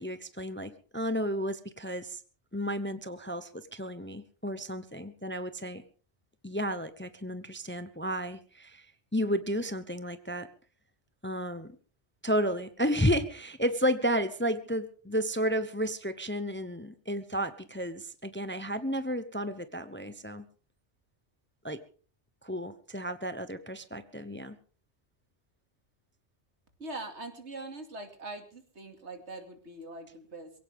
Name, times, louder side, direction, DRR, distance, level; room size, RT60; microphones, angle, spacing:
voice 1, 0.0-2.2 2.5-5.8 6.4-8.9 9.1-10.5 11.2-11.8 12.2-20.5 21.6-21.8 22.4-24.6, equal, 10° left, 12 dB, 0.8 m, -32 dB
voice 2, 26.8-30.5, right 2 dB, 75° right, 5 dB, 2.8 m, -42 dB
22.5 x 17.0 x 3.6 m, 0.39 s
omnidirectional pair, 1.2 m